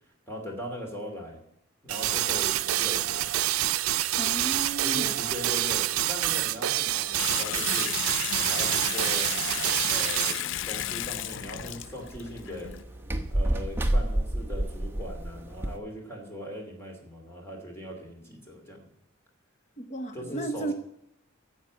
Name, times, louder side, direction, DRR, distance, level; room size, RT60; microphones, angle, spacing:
voice 1, 0.3-1.4 1.8-3.3 4.8-7.9 8.4-9.3 9.8-12.7 13.3-18.9 20.1-20.7, equal, 10° left, 1 dB, 2.6 m, -39 dB
sound 1, 1.9-10.4, right 14 dB, 85° right, 0.4 m, -27 dB
voice 2, 4.2-5.1 19.8-20.7, right 2 dB, 35° left, 9 dB, 0.8 m, -34 dB
Water tap faucet / Sink (filling or washing) / Bathtub (filling or washing), 7.2-12.8, left 12 dB, 60° left, 0.3 m, -33 dB
sound 2, 10.5-15.8, right 1 dB, 10° right, 0.8 m, -30 dB
10.5 x 7.4 x 8.6 m, 0.78 s
head